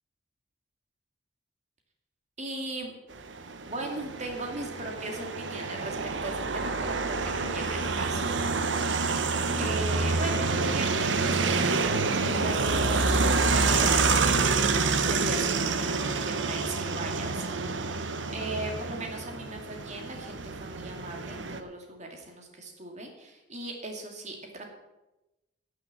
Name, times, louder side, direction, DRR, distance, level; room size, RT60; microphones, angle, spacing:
voice 1, 2.4-3.0 3.7-8.5 9.6-14.5 15.1-17.7 18.3-24.7, right 2 dB, 40° right, 2 dB, 2.3 m, -38 dB
sound 1, 3.2-21.6, right 4 dB, 75° right, 0.9 m, -27 dB
11.0 x 6.8 x 8.3 m, 1.0 s
head